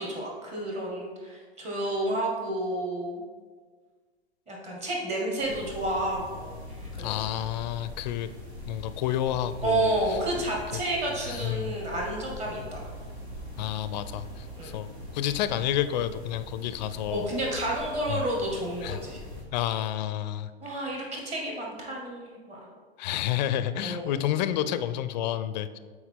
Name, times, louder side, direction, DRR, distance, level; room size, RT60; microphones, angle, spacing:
voice 1, 0.0-3.2 4.5-7.2 9.6-12.9 14.6-14.7 17.1-19.2 20.6-22.6 23.8-24.1, right 1 dB, 20° right, -1 dB, 1.8 m, -30 dB
sound 1, 5.4-19.4, left 1 dB, 90° right, 1.8 m, -42 dB
voice 2, 7.0-8.3 8.7-9.9 11.3-11.7 13.6-17.3 18.1-18.2 18.8-19.0 19.5-20.5 23.0-25.8, left 11 dB, 45° left, 13 dB, 0.4 m, -30 dB
8.2 x 4.6 x 3.7 m, 1.5 s
figure-of-eight pair, 100°, 32 cm